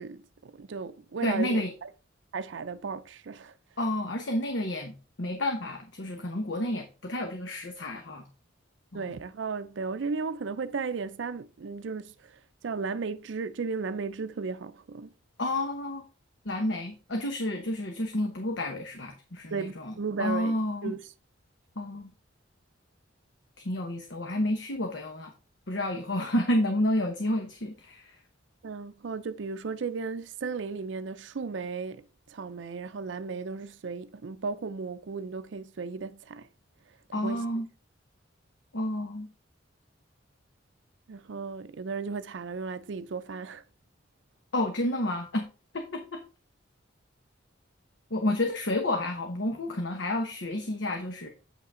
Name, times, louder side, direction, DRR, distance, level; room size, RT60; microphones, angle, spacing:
voice 1, 0.0-1.9 2.3-3.5 8.9-15.1 19.5-21.0 28.6-32.0 32.3-36.5 37.1-37.4 41.1-43.6, right 4 dB, 65° right, 0.5 m, -35 dB
voice 2, 1.2-1.7 3.8-8.2 8.9-9.1 15.4-16.1 16.4-20.9 21.8-22.1 23.6-25.3 25.7-28.2 37.1-37.7 38.7-39.3 44.5-45.5 45.7-46.2 48.1-51.3, left 1 dB, 65° left, 1.0 m, -30 dB
8.2 x 5.7 x 3.7 m
head